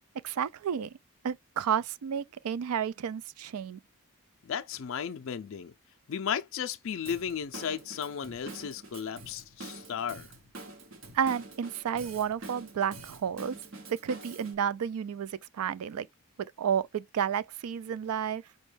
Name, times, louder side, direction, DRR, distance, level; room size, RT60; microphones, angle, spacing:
voice 1, 0.2-1.0 1.2-3.8 11.1-13.6 13.9-16.1 16.4-18.4, right 8 dB, 80° right, 0.4 m, -31 dB
voice 2, 4.4-5.7 6.1-10.3, left 7 dB, 60° left, 0.4 m, -35 dB
Drum kit / Drum, 7.1-14.6, right 3 dB, 60° right, 0.9 m, -46 dB
5.2 x 2.2 x 3.3 m
head